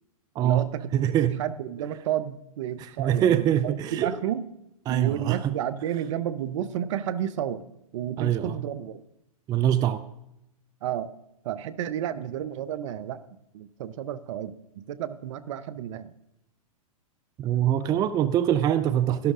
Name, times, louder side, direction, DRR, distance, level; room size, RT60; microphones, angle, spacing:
voice 1, 0.4-4.4 4.9-7.7 7.9-9.0 10.8-11.1 11.4-16.1, right 10 dB, 55° right, 15 dB, 0.7 m, -32 dB
voice 2, 0.9-1.4 3.0-4.1 4.9-5.5 8.2-8.5 9.5-10.0 17.4-19.3, right 10 dB, 20° right, 13 dB, 0.4 m, -23 dB
12.0 x 11.5 x 3.7 m, 0.84 s
hypercardioid pair, 115°, 19 cm